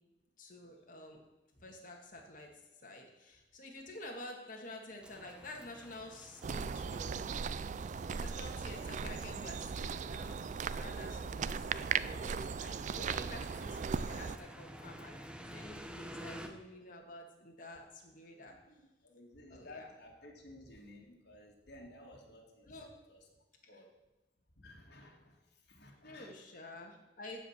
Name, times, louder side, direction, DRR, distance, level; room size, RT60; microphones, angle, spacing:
voice 1, 0.4-1.2 1.6-2.5 2.8-7.3 8.1-10.4 10.7-18.5 19.5-19.9 22.6-22.9 26.0-27.4, left 2 dB, 50° left, 0 dB, 2.1 m, -50 dB
sound 1, 5.0-16.5, equal, 5° right, 1.0 m, -52 dB
sound 2, 6.4-14.4, right 6 dB, 45° right, 0.4 m, -38 dB
voice 2, 18.5-23.3 23.7-23.9 24.5-26.4, left 1 dB, 65° left, -1 dB, 2.4 m, -56 dB
14.5 x 5.0 x 7.3 m, 1.0 s
head